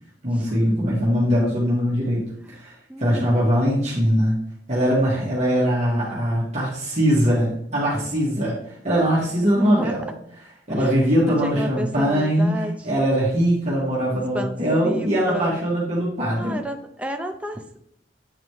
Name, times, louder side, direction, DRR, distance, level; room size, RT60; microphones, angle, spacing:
voice 1, 0.2-4.3 4.7-10.1 10.7-16.6, equal, 40° right, -6 dB, 1.8 m, -21 dB
voice 2, 2.9-3.4 9.5-10.0 10.7-10.9 11.2-12.8 14.3-15.6 16.3-17.8, equal, 5° right, 4 dB, 0.5 m, -31 dB
8.9 x 4.1 x 3.1 m, 0.75 s
head